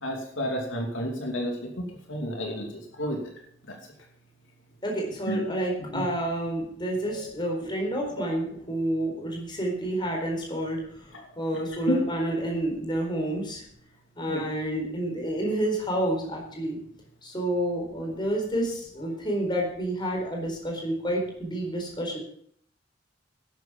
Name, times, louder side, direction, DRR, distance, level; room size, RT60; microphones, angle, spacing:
voice 1, 0.0-3.2 3.7-3.8 5.3-5.4 5.9-6.1 7.0-7.2 11.9-12.0 14.3-14.4, equal, 70° left, 1 dB, 2.8 m, -31 dB
voice 2, 4.8-10.8 11.4-13.6 14.2-16.8 17.2-22.2, right 1 dB, 25° left, 1 dB, 4.3 m, -29 dB
12.0 x 9.5 x 7.3 m, 0.62 s
head